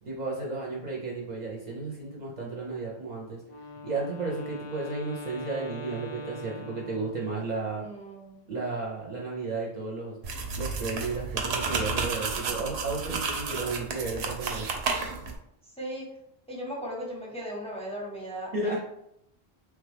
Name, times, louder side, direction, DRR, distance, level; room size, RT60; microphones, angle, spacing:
voice 1, 0.0-3.4 3.8-7.8 8.5-10.1 10.6-14.7 18.5-18.8, right 3 dB, 50° right, -3 dB, 0.6 m, -33 dB
Wind instrument woodwind instrument, 3.4-7.5, left 1 dB, 55° left, 0.3 m, -42 dB
voice 2, 7.8-8.4 15.8-16.1 16.5-18.8, equal, 5° left, -3 dB, 0.7 m, -37 dB
sound 1, 10.2-15.4, right 4 dB, 90° right, 0.8 m, -31 dB
3.1 x 2.3 x 3.3 m, 0.78 s
omnidirectional pair, 1.0 m